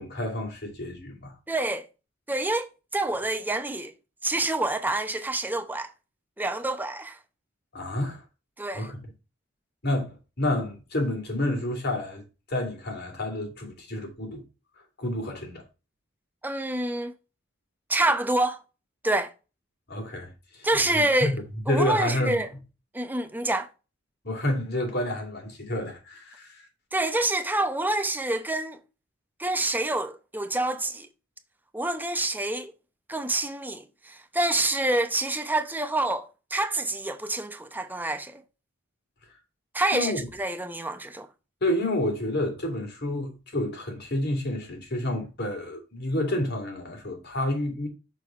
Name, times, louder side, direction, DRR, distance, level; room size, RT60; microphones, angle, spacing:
voice 1, 0.0-1.3 7.7-8.2 8.7-9.0 9.8-12.2 12.5-14.4 15.0-15.6 19.9-21.4 21.7-22.4 24.2-26.6 39.9-40.3 41.6-47.9, left 1 dB, 55° left, 2.7 m, -29 dB
voice 2, 1.5-1.9 2.3-3.9 4.2-5.9 6.4-7.2 8.6-8.9 16.4-17.1 17.9-18.6 19.0-19.3 20.6-21.3 21.7-22.5 22.9-23.7 26.9-28.8 29.4-31.1 31.7-32.7 33.1-38.4 39.7-41.3, right 2 dB, 10° right, 0.8 m, -27 dB
6.5 x 4.0 x 4.8 m
head